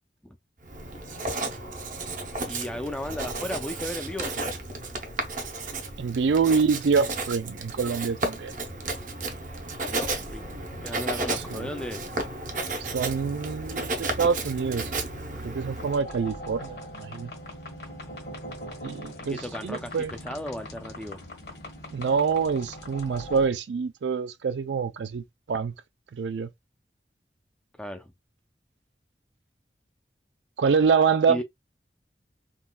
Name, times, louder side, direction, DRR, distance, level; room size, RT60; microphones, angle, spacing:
Writing, 0.6-16.0, right 2 dB, 45° right, 0.7 m, -33 dB
voice 1, 2.5-4.3 9.9-10.5 10.8-12.1 19.3-21.2 27.8-28.1 31.3-31.4, left 1 dB, 5° left, 0.4 m, -35 dB
voice 2, 6.0-8.5 11.5-11.7 12.8-14.9 15.4-17.3 18.8-20.1 21.9-25.7 26.1-26.5 30.6-31.4, right 5 dB, 85° right, 0.4 m, -26 dB
sound 1, 15.8-23.5, left 1 dB, 65° left, 1.4 m, -41 dB
3.7 x 2.4 x 2.3 m
head